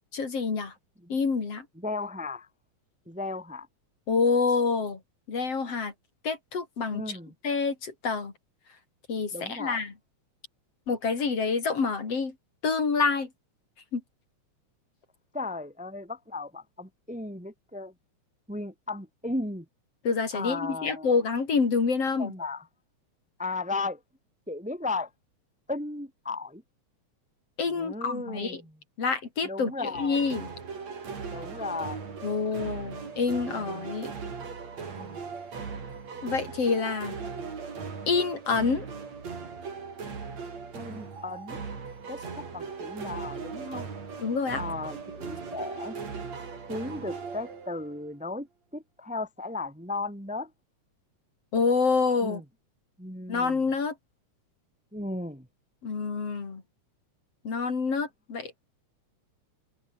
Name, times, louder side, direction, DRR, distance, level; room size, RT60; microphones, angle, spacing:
voice 1, 0.1-0.7 1.1-1.7 4.1-5.0 5.3-5.9 6.2-7.2 7.4-8.3 9.1-9.9 10.9-12.3 12.6-13.3 13.9-14.0 20.0-22.3 27.6-28.6 29.0-30.5 32.2-34.1 36.2-37.2 38.1-38.9 44.2-44.6 51.5-52.4 53.3-53.9 55.8-56.6 57.4-58.7, left 4 dB, 50° left, 4.6 m, -27 dB
voice 2, 1.8-2.5 3.1-3.7 6.9-7.3 9.3-9.8 15.3-17.9 18.5-19.6 20.3-21.1 22.2-22.6 23.4-24.0 24.5-25.1 25.7-26.6 27.7-28.6 29.4-30.2 31.3-32.0 32.6-32.7 33.6-33.9 34.9-35.2 40.7-41.6 42.1-43.9 44.5-46.0 46.7-48.5 48.7-50.5 52.2-52.4 53.0-53.6 54.9-55.5, left 2 dB, 5° right, 2.3 m, -35 dB
sound 1, 29.9-48.1, right 5 dB, 60° right, 5.2 m, -38 dB
omnidirectional pair, 3.4 m